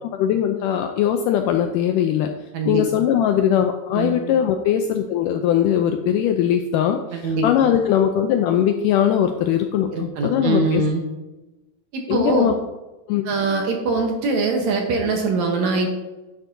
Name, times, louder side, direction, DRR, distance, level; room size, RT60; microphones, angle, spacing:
voice 1, 0.0-2.3 2.7-10.8 12.1-12.5 13.1-13.2, left 9 dB, 85° left, 5 dB, 1.8 m, -20 dB
voice 2, 2.5-2.9 3.9-4.2 7.1-7.5 9.9-11.0 11.9-12.6 13.2-15.9, right 3 dB, 65° right, 2 dB, 1.9 m, -22 dB
11.0 x 10.0 x 2.6 m, 1.1 s
omnidirectional pair, 4.3 m